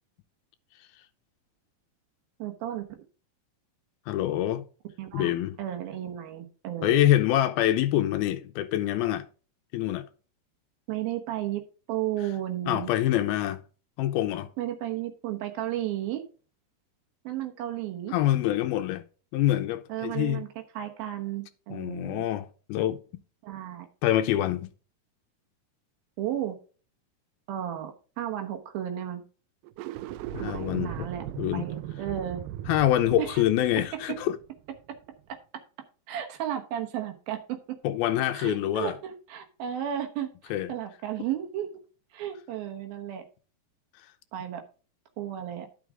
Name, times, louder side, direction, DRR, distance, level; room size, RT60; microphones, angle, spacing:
voice 1, 2.4-2.9 5.0-5.3 5.6-7.1 10.9-11.6 11.9-12.9 14.6-16.2 17.2-18.2 19.9-20.5 20.7-22.3 23.4-23.9 26.2-26.6 27.5-29.2 30.4-31.2 31.5-32.4 33.2-33.3 36.1-37.6 38.3-41.7 42.1-43.2 44.3-44.6 45.2-45.7, right 11 dB, 70° right, 3.0 m, -33 dB
voice 2, 4.1-4.6 5.1-5.6 6.8-9.3 9.7-10.1 12.7-13.6 14.0-14.5 18.1-19.1 19.3-20.4 21.7-23.0 24.0-24.7 30.3-31.1 31.4-31.7 32.7-34.4 37.8-39.0 40.5-40.7, left 13 dB, 80° left, 2.5 m, -25 dB
sound 1, 29.6-34.9, right 13 dB, 90° right, 1.9 m, -38 dB
11.0 x 6.3 x 3.5 m
omnidirectional pair, 4.5 m